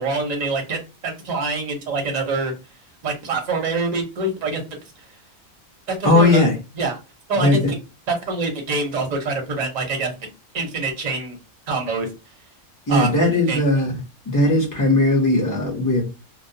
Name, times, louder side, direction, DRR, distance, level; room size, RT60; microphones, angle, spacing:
voice 1, 0.0-2.5 3.0-4.6 5.9-6.5 6.8-7.0 7.3-7.8 8.1-10.1 10.5-11.4 11.7-12.1 12.9-13.1 13.5-13.6, right 3 dB, 40° right, 0.7 m, -25 dB
voice 2, 6.0-6.5 7.4-7.7 12.9-13.9 14.3-16.0, left 2 dB, 20° left, 0.6 m, -18 dB
2.3 x 2.1 x 2.6 m
omnidirectional pair, 1.4 m